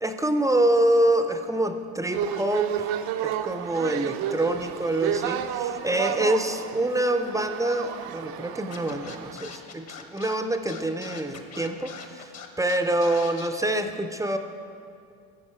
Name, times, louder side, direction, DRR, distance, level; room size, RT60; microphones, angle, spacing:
voice 1, 0.0-2.9 3.2-12.3 12.6-14.4, right 1 dB, 10° right, 7 dB, 0.5 m, -26 dB
sound 1, 2.1-9.3, right 9 dB, 60° right, 0.6 m, -31 dB
Scratching (performance technique), 8.7-13.5, left 6 dB, 35° left, 1.0 m, -42 dB
14.0 x 5.3 x 4.4 m, 2.4 s
hypercardioid pair, 80°, 42 cm